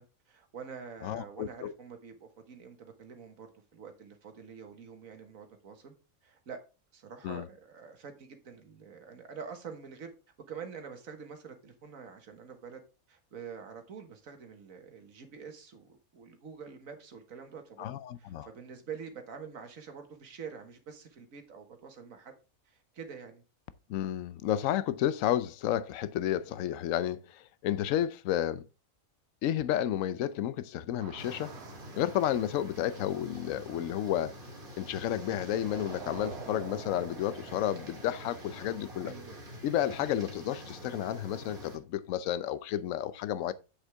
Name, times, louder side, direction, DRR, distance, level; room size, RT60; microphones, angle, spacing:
voice 1, 0.0-5.9 6.2-6.6 6.9-10.1 10.5-12.8 13.1-17.9 18.2-22.3 22.7-23.4 26.4-26.7 35.9-36.3 39.0-39.4, right 6 dB, 75° right, 1.8 m, -46 dB
voice 2, 1.0-1.7 7.2-7.5 17.8-18.5 23.9-28.6 29.4-31.5 31.9-34.3 34.8-39.1 39.6-43.5, left 11 dB, 70° left, 1.0 m, -31 dB
sound 1, 31.0-35.0 35.5-39.7, right 7 dB, 55° right, 1.0 m, -50 dB
sound 2, 31.2-41.8, equal, 40° right, 2.1 m, -46 dB
8.1 x 6.4 x 3.4 m
omnidirectional pair, 1.5 m